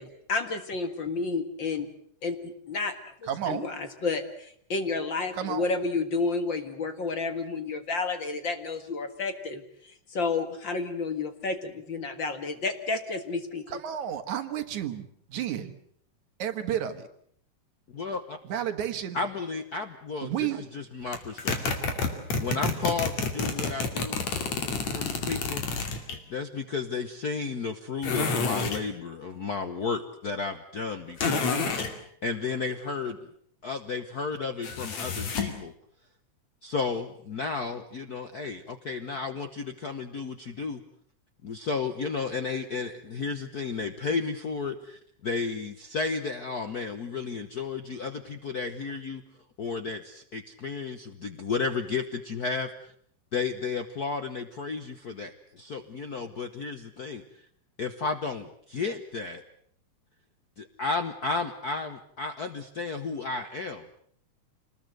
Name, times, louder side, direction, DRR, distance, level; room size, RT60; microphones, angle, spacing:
voice 1, 0.0-1.9 2.2-2.9 3.5-4.2 4.7-9.6 10.1-13.8, left 4 dB, 45° left, 8 dB, 2.1 m, -30 dB
voice 2, 3.3-3.7 5.3-5.7 13.7-15.8 16.4-17.1 18.4-19.2 20.2-20.6, right 10 dB, 70° right, 8 dB, 2.9 m, -31 dB
voice 3, 17.9-18.4 19.1-21.6 22.4-24.2 24.9-25.7 26.3-31.6 32.2-33.2 33.6-35.7 36.6-40.8 41.4-49.2 49.6-52.9 53.3-57.2 57.8-59.4 60.6-63.9, left 4 dB, 85° left, 9 dB, 0.8 m, -33 dB
sound 1, 21.1-26.2 28.0-28.9 31.2-31.9 34.6-35.6, left 4 dB, 65° left, 3.7 m, -29 dB
27.0 x 20.0 x 7.8 m, 0.63 s
omnidirectional pair, 3.5 m